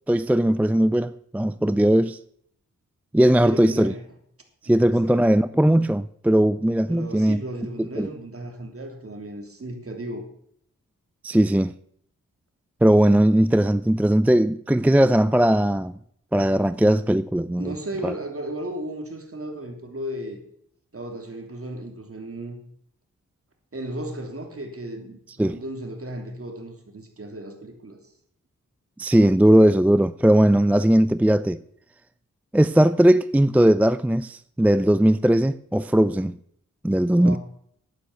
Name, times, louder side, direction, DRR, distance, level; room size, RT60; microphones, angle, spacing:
voice 1, 0.1-2.2 3.1-3.9 4.6-7.4 7.8-8.1 11.2-11.7 12.8-16.0 16.3-17.7 18.0-18.1 25.4-25.6 29.0-31.6 32.5-36.4 36.8-37.4, right 1 dB, 5° right, 0.4 m, -19 dB
voice 2, 3.4-4.0 4.6-5.2 6.9-10.2 17.6-20.4 20.9-22.6 23.7-28.0 37.1-37.4, right 1 dB, 45° right, 3.3 m, -35 dB
11.5 x 9.0 x 6.9 m
cardioid pair, 60°, 32 cm